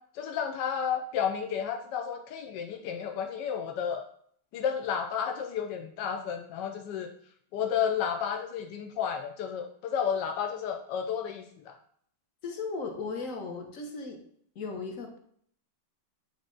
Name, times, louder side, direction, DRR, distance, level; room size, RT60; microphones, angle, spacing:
voice 1, 0.1-4.0 4.5-7.1 7.5-11.8, left 8 dB, 85° left, 3 dB, 1.3 m, -32 dB
voice 2, 12.4-14.2 14.5-15.2, left 4 dB, 55° left, 3 dB, 1.2 m, -36 dB
8.6 x 3.5 x 3.8 m, 0.64 s
omnidirectional pair, 1.9 m